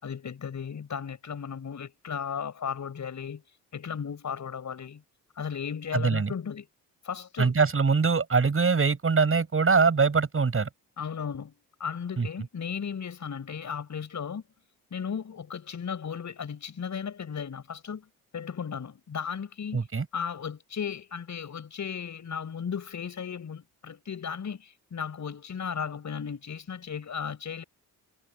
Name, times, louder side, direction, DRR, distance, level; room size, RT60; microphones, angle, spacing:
voice 1, 0.0-3.4 3.7-5.0 5.4-6.6 7.0-7.5 11.0-11.5 11.8-14.4 14.9-18.1 18.3-19.8 20.1-27.6, left 7 dB, 55° left, 7.0 m, -35 dB
voice 2, 5.9-6.3 7.4-10.7 12.2-12.3 19.7-20.1, right 5 dB, 40° right, 7.8 m, -23 dB
cardioid pair, 80°, 34 cm